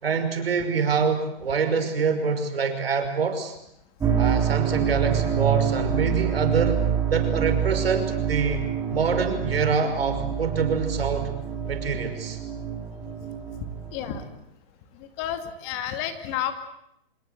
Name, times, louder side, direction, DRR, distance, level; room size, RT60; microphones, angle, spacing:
voice 1, 0.0-3.6 4.2-6.8 7.1-8.6 8.9-11.3 11.6-12.4, right 5 dB, 80° right, 7 dB, 5.7 m, -25 dB
sound 1, 4.0-14.2, right 8 dB, 10° right, 3.3 m, -26 dB
voice 2, 13.9-14.2 14.9-16.5, left 10 dB, 30° left, 8 dB, 2.4 m, -31 dB
25.5 x 22.0 x 8.1 m, 0.76 s
hypercardioid pair, 150°, 29 cm